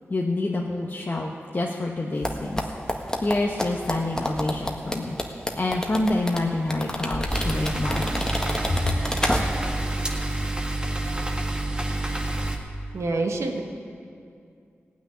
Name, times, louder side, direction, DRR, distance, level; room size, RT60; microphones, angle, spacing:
voice 1, 0.1-2.6 3.2-5.1 5.5-8.3 8.7-8.9, left 2 dB, 45° left, -1 dB, 1.2 m, -27 dB
sound 1, 2.2-9.8 10.1-10.2, left 1 dB, 15° left, 1.7 m, -29 dB
sound 2, 7.3-12.6, right 1 dB, 20° right, 1.6 m, -28 dB
voice 2, 12.9-13.6, right 2 dB, 85° right, 3 dB, 1.4 m, -27 dB
16.5 x 6.3 x 9.6 m, 2.4 s
cardioid pair, 45°, 5 cm